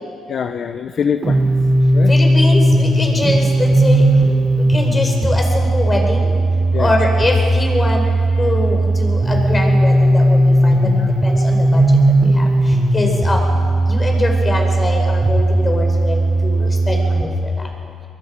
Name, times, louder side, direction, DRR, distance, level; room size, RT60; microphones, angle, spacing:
voice 1, 0.3-1.4 1.9-2.1 6.7-7.0 8.3-8.5 10.8-11.1 13.1-13.2 17.6-17.7, left 7 dB, 60° left, 8 dB, 0.8 m, -24 dB
sound 1, 1.2-17.2, right 1 dB, 30° right, 3.7 m, -16 dB
voice 2, 2.1-4.1 4.7-6.3 6.8-8.0 8.4-10.8 11.2-11.8 12.3-13.4 13.9-17.5, left 1 dB, 25° left, 2 dB, 5.0 m, -23 dB
23.0 x 22.5 x 5.2 m, 2.3 s
cardioid pair, 90°, 0 cm